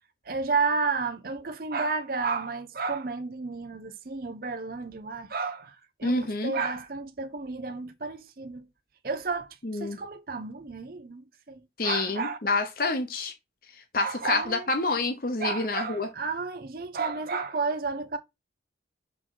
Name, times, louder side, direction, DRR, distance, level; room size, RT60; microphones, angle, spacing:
voice 1, 0.3-8.7 9.0-12.4 14.0-14.7 15.4-18.2, right 4 dB, 50° right, 0.7 m, -32 dB
voice 2, 6.0-6.5 9.6-10.0 11.8-13.3 13.9-16.1, left 3 dB, 50° left, 0.9 m, -28 dB
6.1 x 3.8 x 6.2 m
head